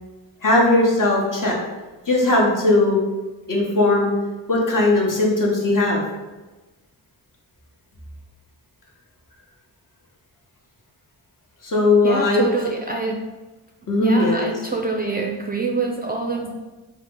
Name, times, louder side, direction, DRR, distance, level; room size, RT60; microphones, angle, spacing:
voice 1, 0.4-1.6 2.1-3.0 3.5-4.1 4.5-6.0 11.6-12.4 13.9-14.4, left 2 dB, 50° left, -2 dB, 1.0 m, -18 dB
voice 2, 12.0-13.2 14.0-16.5, right 3 dB, 25° right, 0 dB, 0.4 m, -25 dB
3.1 x 2.0 x 3.7 m, 1.2 s
cardioid pair, 40°, 42 cm